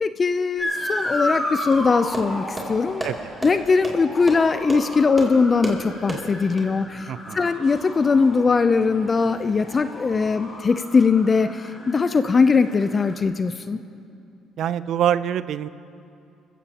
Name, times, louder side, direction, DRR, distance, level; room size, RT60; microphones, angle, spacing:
voice 1, 0.0-3.0 3.4-7.1 7.3-13.8, left 4 dB, 35° left, 11 dB, 0.5 m, -20 dB
Motor vehicle (road) / Siren, 0.6-13.2, left 1 dB, 15° left, 4.2 m, -33 dB
sound 1, 1.7-6.7, right 2 dB, 20° right, 2.8 m, -33 dB
voice 2, 7.1-7.5 14.6-15.7, right 10 dB, 65° right, 15 dB, 0.4 m, -24 dB
26.5 x 15.5 x 2.9 m, 2.6 s
cardioid pair, 85°, 0 cm